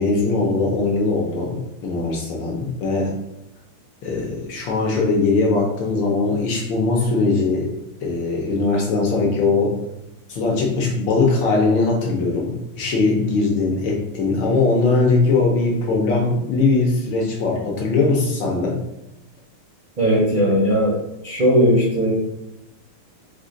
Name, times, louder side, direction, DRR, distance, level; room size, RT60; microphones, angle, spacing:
voice 1, 0.0-3.2 4.0-7.7 8.0-9.8 10.3-18.7, left 3 dB, 65° left, -1 dB, 1.4 m, -20 dB
voice 2, 20.0-21.0 21.2-22.1, equal, 40° right, -5 dB, 0.6 m, -17 dB
5.0 x 2.4 x 3.8 m, 0.89 s
omnidirectional pair, 2.4 m